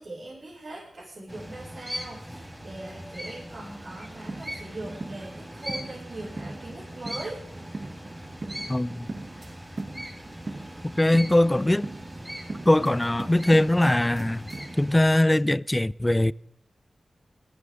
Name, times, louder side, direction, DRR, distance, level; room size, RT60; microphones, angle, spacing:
voice 1, 0.0-7.4, right 2 dB, 65° right, 6.3 m, -40 dB
sound 1, 1.3-15.2, equal, 5° right, 5.8 m, -41 dB
sound 2, 3.8-14.8, right 2 dB, 50° right, 1.0 m, -40 dB
voice 2, 8.7-9.2 11.0-11.9 12.7-14.5 14.8-16.3, left 1 dB, 20° left, 0.4 m, -21 dB
18.5 x 14.0 x 3.8 m
cardioid pair, 45°, 0 cm